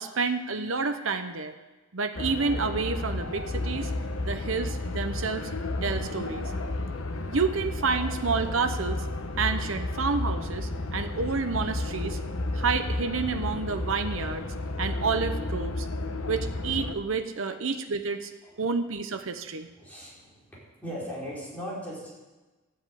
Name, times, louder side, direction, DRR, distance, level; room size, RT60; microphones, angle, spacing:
voice 1, 0.0-1.5 1.9-3.9 4.2-5.4 5.8-6.5 7.3-9.0 9.4-12.2 12.5-14.4 14.8-15.9 16.3-18.3 18.6-19.7, right 4 dB, 75° right, 8 dB, 0.9 m, -29 dB
sound 1, 2.2-16.9, left 2 dB, 90° left, 1.1 m, -32 dB
voice 2, 19.8-22.1, equal, 5° left, -7 dB, 5.3 m, -39 dB
12.5 x 7.8 x 9.3 m, 1.2 s
head